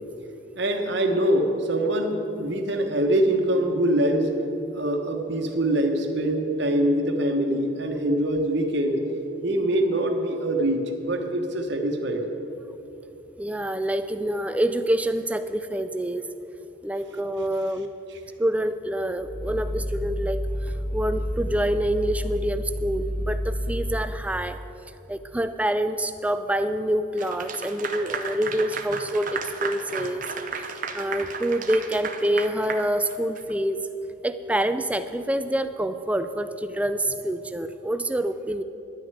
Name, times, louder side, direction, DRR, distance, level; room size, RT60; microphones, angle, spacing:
voice 1, 0.5-4.4 4.7-9.0 9.4-12.3, right 1 dB, 55° right, 4 dB, 1.2 m, -24 dB
voice 2, 13.4-16.3 16.8-18.0 18.4-24.6 25.1-30.3 30.9-33.9 34.2-38.6, right 1 dB, 5° right, 10 dB, 0.3 m, -26 dB
Growling, 19.2-24.1, equal, 25° left, 1.9 m, -30 dB
Clapping / Applause, 27.2-33.5, right 5 dB, 40° right, 0.7 m, -34 dB
11.5 x 6.5 x 9.4 m, 3.0 s
head